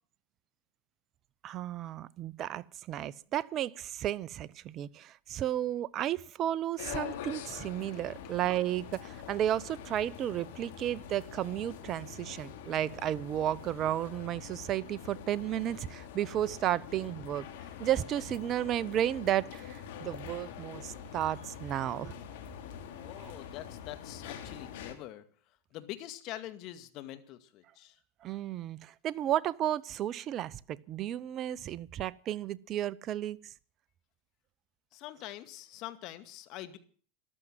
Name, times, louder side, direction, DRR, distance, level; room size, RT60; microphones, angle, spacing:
voice 1, 1.4-17.5 17.8-22.1 23.2-23.3 28.2-33.5, right 12 dB, 40° right, 0.7 m, -33 dB
sound 1, 6.8-25.0, left 8 dB, 70° left, 3.0 m, -45 dB
voice 2, 23.0-28.0 34.9-36.8, left 14 dB, 55° left, 2.2 m, -45 dB
14.5 x 12.0 x 7.7 m
hypercardioid pair, 105°, 0 cm